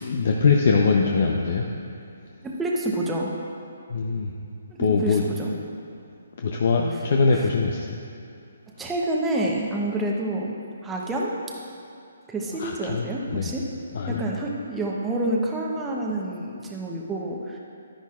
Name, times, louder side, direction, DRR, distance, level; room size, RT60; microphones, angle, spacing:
voice 1, 0.0-1.7 3.9-4.3 4.8-5.2 6.4-8.0 12.6-13.5 13.9-14.2, left 4 dB, 50° left, 0 dB, 0.7 m, -22 dB
voice 2, 2.4-3.3 4.7-5.5 8.8-10.5 10.8-11.3 12.3-13.7 14.1-17.6, right 1 dB, 10° right, -3 dB, 0.9 m, -28 dB
11.0 x 10.0 x 2.5 m, 2.4 s
hypercardioid pair, 160°, 0 cm